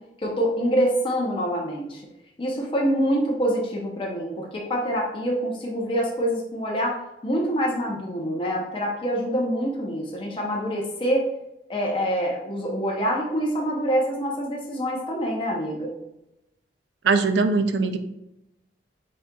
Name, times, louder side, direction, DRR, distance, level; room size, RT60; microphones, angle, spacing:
voice 1, 0.2-2.0 2.4-7.0 7.2-11.3 11.7-15.9, equal, 30° left, -2 dB, 0.7 m, -25 dB
voice 2, 17.0-18.0, right 4 dB, 65° right, 9 dB, 0.4 m, -21 dB
5.3 x 3.9 x 2.3 m, 0.89 s
head